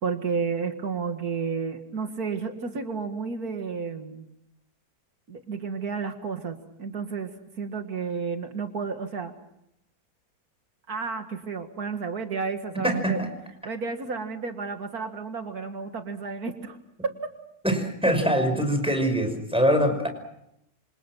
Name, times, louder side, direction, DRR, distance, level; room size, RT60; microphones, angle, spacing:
voice 1, 0.0-4.2 5.3-7.3 7.6-9.3 10.9-13.2 13.6-16.8 17.0-17.3, right 5 dB, 75° right, 6 dB, 2.3 m, -31 dB
voice 2, 12.8-13.3 17.6-20.1, equal, 5° right, 6 dB, 5.5 m, -23 dB
28.0 x 27.0 x 6.1 m, 0.79 s
omnidirectional pair, 1.6 m